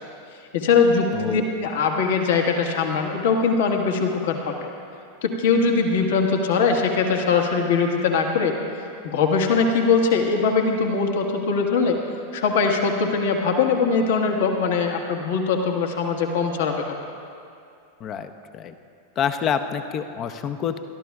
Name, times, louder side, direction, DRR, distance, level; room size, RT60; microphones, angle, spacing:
voice 1, 0.5-4.7 5.2-12.0 12.3-16.7, left 5 dB, 55° left, 2 dB, 1.5 m, -21 dB
voice 2, 1.1-1.5 18.0-18.7 19.2-20.8, left 8 dB, 30° left, 9 dB, 0.7 m, -27 dB
29.0 x 13.5 x 2.4 m, 2.5 s
figure-of-eight pair, 90°, 0 cm